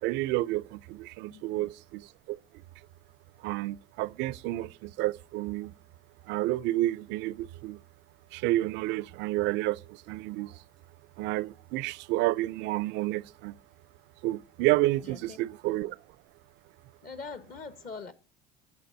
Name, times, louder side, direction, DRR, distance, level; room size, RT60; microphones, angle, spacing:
voice 1, 0.0-2.4 3.4-5.7 6.3-7.8 8.3-10.6 11.2-13.6 14.2-16.0, right 17 dB, 65° right, 0.4 m, -30 dB
voice 2, 1.3-1.7 15.0-15.4 17.0-18.1, left 4 dB, 45° left, 0.9 m, -43 dB
10.5 x 6.4 x 2.7 m
hypercardioid pair, 75°, 21 cm